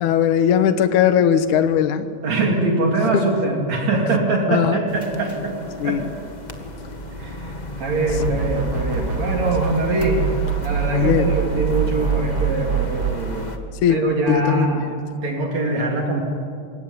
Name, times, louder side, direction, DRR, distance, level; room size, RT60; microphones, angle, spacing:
voice 1, 0.0-2.1 4.5-4.8 5.8-6.0 10.9-11.3 13.8-14.0 14.3-14.7, left 9 dB, 80° left, 10 dB, 2.6 m, -18 dB
voice 2, 2.2-5.6 5.8-6.0 7.2-10.2 10.6-13.5 13.9-14.8 15.2-16.2, right 2 dB, 60° right, 1 dB, 4.1 m, -23 dB
sound 1, 4.9-13.6, left 1 dB, 20° left, 1.2 m, -35 dB
sound 2, 8.1-9.8 10.0-13.1, right 7 dB, 35° right, 2.5 m, -24 dB
25.5 x 23.0 x 9.7 m, 2.3 s
omnidirectional pair, 3.5 m